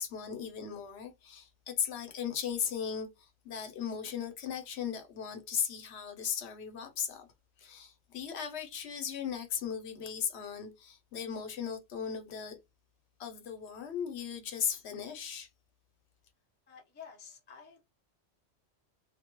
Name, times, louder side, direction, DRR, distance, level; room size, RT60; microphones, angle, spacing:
voice 1, 0.0-7.3 7.6-12.6 13.2-15.5, left 7 dB, 70° left, 0.9 m, -37 dB
voice 2, 16.7-17.8, left 7 dB, 15° left, 0.4 m, -51 dB
2.3 x 2.1 x 2.9 m
omnidirectional pair, 1.1 m